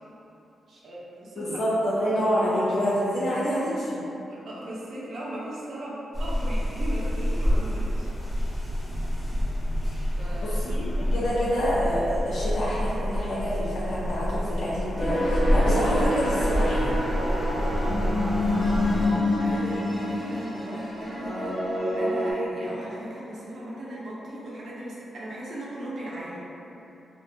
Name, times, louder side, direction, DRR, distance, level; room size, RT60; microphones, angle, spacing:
voice 1, 0.7-1.6 2.8-2.9 4.3-8.1 10.2-10.8 19.4-26.4, right 1 dB, 60° right, -7 dB, 0.6 m, -38 dB
voice 2, 1.4-4.0 10.4-16.9, equal, 75° left, -10 dB, 0.5 m, -27 dB
sound 1, 6.1-19.1, equal, 20° left, 0.5 m, -27 dB
sound 2, 14.9-22.3, left 1 dB, 15° right, 1.0 m, -27 dB
2.8 x 2.2 x 2.4 m, 2.9 s
wide cardioid pair, 175°, 0 cm